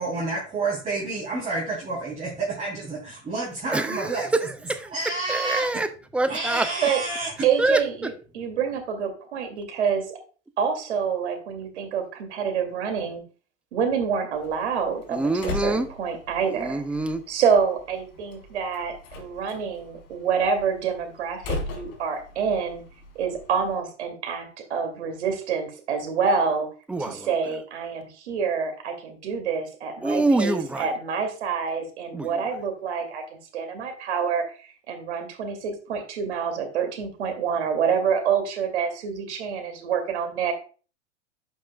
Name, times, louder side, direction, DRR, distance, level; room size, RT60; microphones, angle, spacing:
voice 1, 0.0-4.3 4.9-5.7 6.3-7.3, right 3 dB, 20° right, -5 dB, 3.1 m, -29 dB
voice 2, 3.7-4.9 5.3-6.7 7.6-8.1 15.1-15.9 16.5-17.2 26.9-27.3 30.0-30.9 32.1-32.4, right 2 dB, 5° right, 9 dB, 0.3 m, -25 dB
voice 3, 7.4-10.2 10.6-13.2 13.7-16.8 17.3-22.8 23.2-26.7 27.0-33.2 33.5-40.5, right 6 dB, 70° right, 5 dB, 2.3 m, -27 dB
Slam, 14.3-23.8, left 3 dB, 55° left, 3.0 m, -39 dB
12.0 x 5.3 x 2.2 m, 0.37 s
hypercardioid pair, 105°, 35 cm